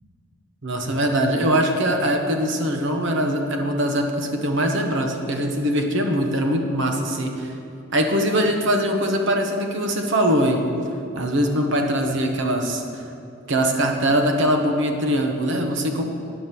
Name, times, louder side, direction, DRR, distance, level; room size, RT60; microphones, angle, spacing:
voice 1, 0.6-7.5 7.9-10.6 11.1-13.0 13.5-16.0, equal, 65° right, 3 dB, 1.0 m, -22 dB
9.1 x 6.0 x 6.9 m, 2.8 s
head